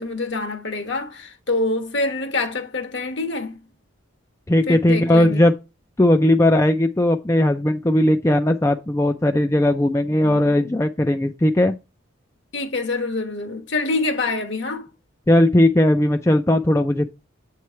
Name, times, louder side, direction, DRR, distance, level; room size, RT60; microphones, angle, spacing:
voice 1, 0.0-3.6 4.7-5.4 10.2-10.7 12.5-14.9, left 3 dB, 60° left, 1.3 m, -26 dB
voice 2, 4.5-5.5 6.0-11.8 15.3-17.1, left 1 dB, 15° left, 0.4 m, -18 dB
8.2 x 3.2 x 5.6 m
head